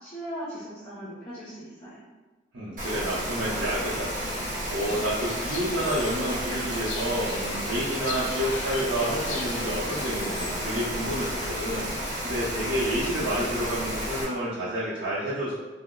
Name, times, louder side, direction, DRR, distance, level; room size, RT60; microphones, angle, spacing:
voice 1, 0.0-2.0, equal, 35° left, -9 dB, 0.6 m, -38 dB
voice 2, 2.5-15.5, equal, 90° right, -10 dB, 0.7 m, -30 dB
Rain, 2.8-14.2, equal, 45° right, 0.7 m, -32 dB
sound 1, 4.6-10.5, left 4 dB, 85° left, 0.4 m, -41 dB
2.8 x 2.0 x 3.7 m, 1.3 s
head